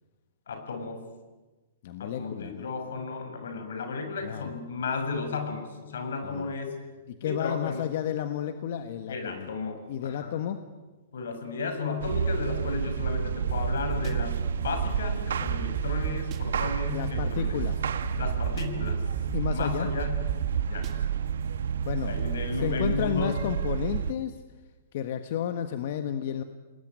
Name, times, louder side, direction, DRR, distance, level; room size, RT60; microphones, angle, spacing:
voice 1, 0.5-1.0 2.0-6.7 7.2-7.9 9.1-10.4 11.1-17.6 18.2-19.0 19.5-20.3 20.7-21.0 22.0-23.3, left 4 dB, 85° left, 7 dB, 6.6 m, -34 dB
voice 2, 1.8-2.7 4.2-4.5 6.2-6.5 7.1-9.5 9.9-10.6 16.9-17.8 19.3-19.9 21.8-22.2 22.6-24.4 24.9-26.4, left 9 dB, 50° left, 8 dB, 1.5 m, -32 dB
sound 1, 12.0-24.1, right 7 dB, 90° right, 1.5 m, -30 dB
sound 2, 13.5-14.1 14.6-15.0 15.5-16.4 17.1-17.2 17.6-17.7 18.0-18.6 19.1-19.5 20.0-20.9, right 10 dB, 25° right, 1.8 m, -35 dB
29.0 x 20.5 x 9.6 m, 1.2 s
hypercardioid pair, 170°, 0 cm